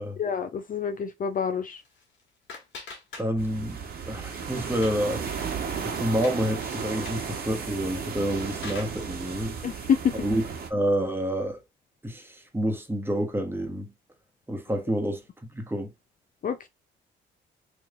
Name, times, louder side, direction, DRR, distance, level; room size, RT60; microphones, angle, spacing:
voice 1, 0.2-1.8 9.6-10.3 16.4-16.7, left 7 dB, 45° left, 0.5 m, -27 dB
sound 1, 1.7-3.7 4.0-5.1 5.5-5.6 6.0-6.4 6.9-7.3 8.1-9.0, left 4 dB, 70° left, 1.6 m, -44 dB
voice 2, 3.2-5.2 5.8-9.6 10.2-10.4 10.7-11.6 12.0-13.9 14.5-15.2 15.5-15.9, equal, 10° right, 1.1 m, -28 dB
sound 2, 3.4-10.7, right 6 dB, 50° right, 1.2 m, -34 dB
3.3 x 3.0 x 3.6 m
cardioid pair, 90°, 20 cm